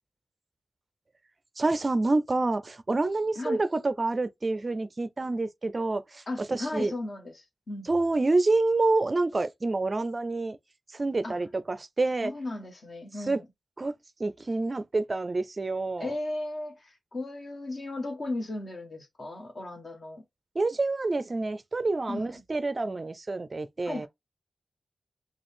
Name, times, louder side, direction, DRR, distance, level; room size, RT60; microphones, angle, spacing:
voice 1, 1.6-6.2 6.5-6.9 7.9-10.6 10.9-12.3 13.3-13.4 13.8-13.9 14.2-16.1 20.6-24.1, right 3 dB, 35° right, 0.4 m, -27 dB
voice 2, 6.3-7.9 11.2-11.4 12.2-13.4 16.0-20.2 22.1-22.4 23.8-24.1, left 2 dB, 50° left, 1.4 m, -36 dB
5.1 x 2.3 x 3.6 m
wide cardioid pair, 85°, 0 cm